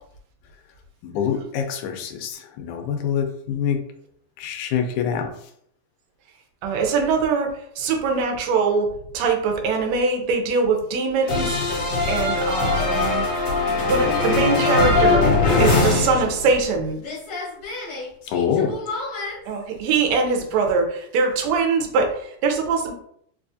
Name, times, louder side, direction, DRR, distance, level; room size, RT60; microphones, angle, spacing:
voice 1, 1.0-3.8 4.4-5.3 18.3-18.7, left 7 dB, 85° left, 5 dB, 2.0 m, -25 dB
voice 2, 6.6-8.9 9.1-11.6 12.1-13.3 13.8-15.3 15.6-17.0 19.5-22.9, right 4 dB, 75° right, 2 dB, 1.7 m, -22 dB
sound 1, 11.3-16.7 17.0-19.3, left 3 dB, 60° left, 2.2 m, -21 dB
4.7 x 2.4 x 2.6 m, 0.68 s
omnidirectional pair, 3.5 m